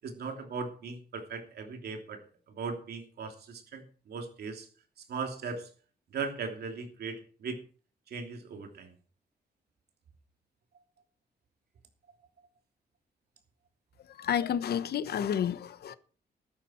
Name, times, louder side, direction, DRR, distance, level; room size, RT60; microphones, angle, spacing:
voice 1, 0.0-4.7 5.1-5.7 6.1-7.6 8.1-8.9, right 4 dB, 85° right, 2.9 m, -38 dB
voice 2, 14.2-16.0, left 9 dB, 80° left, 1.0 m, -30 dB
15.0 x 12.0 x 4.4 m
wide cardioid pair, 175°, 16 cm